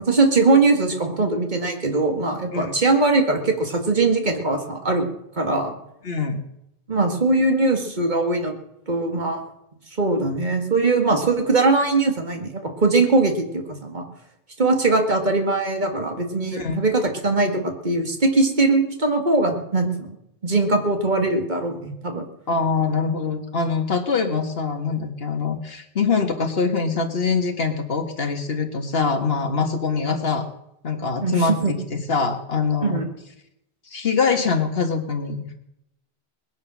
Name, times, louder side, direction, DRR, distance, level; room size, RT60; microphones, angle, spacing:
voice 1, 0.0-5.1 5.4-5.7 6.9-8.5 8.9-9.4 10.0-14.0 14.6-20.2 20.4-22.3 31.2-31.7 32.8-33.0, right 3 dB, 45° right, 4 dB, 2.2 m, -21 dB
voice 2, 6.0-6.4 16.5-16.8 22.5-30.5 30.8-33.0 33.9-35.5, left 5 dB, 70° left, 5 dB, 1.9 m, -24 dB
20.0 x 10.5 x 6.3 m, 0.82 s
omnidirectional pair, 1.0 m